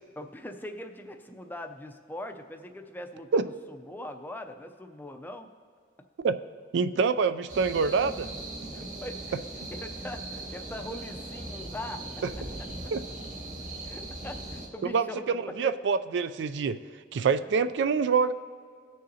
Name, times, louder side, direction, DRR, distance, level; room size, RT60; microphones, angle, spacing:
voice 1, 0.2-5.5 8.7-12.9 13.9-15.8 17.4-17.5, left 1 dB, 10° left, 5 dB, 0.5 m, -41 dB
voice 2, 6.7-8.3 12.9-13.0 14.8-16.8 17.1-18.3, right 5 dB, 65° right, 12 dB, 0.3 m, -26 dB
sound 1, 7.5-14.7, right 2 dB, 45° right, 1.3 m, -39 dB
18.0 x 6.5 x 2.8 m, 2.1 s
head